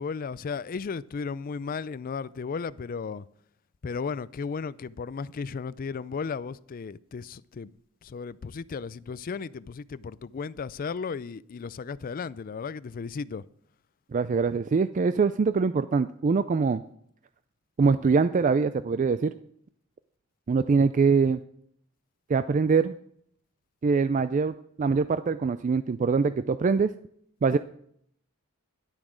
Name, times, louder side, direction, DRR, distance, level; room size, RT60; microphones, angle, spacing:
voice 1, 0.0-3.2 3.8-7.7 8.1-13.4, left 5 dB, 45° left, 0.4 m, -35 dB
voice 2, 14.1-16.8 17.8-19.3 20.5-21.4 22.3-22.9 23.8-26.9 27.4-27.6, right 5 dB, 35° right, 0.3 m, -23 dB
11.5 x 8.7 x 6.2 m
head